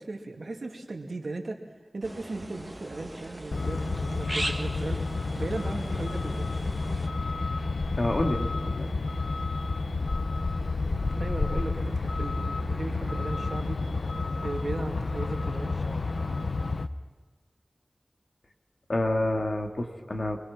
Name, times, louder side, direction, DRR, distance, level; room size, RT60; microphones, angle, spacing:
voice 1, 0.0-1.6 1.9-6.7 11.2-13.8 14.4-16.0, right 2 dB, 80° right, 3 dB, 2.4 m, -37 dB
sound 1, 2.0-7.1, right 1 dB, 20° right, 1.6 m, -39 dB
Truck, 3.5-16.9, left 3 dB, 85° left, 0.7 m, -30 dB
voice 2, 8.0-8.9 18.9-20.4, left 1 dB, 60° left, 3 dB, 2.4 m, -28 dB
27.0 x 21.5 x 6.0 m, 1.3 s
wide cardioid pair, 50°, 0 cm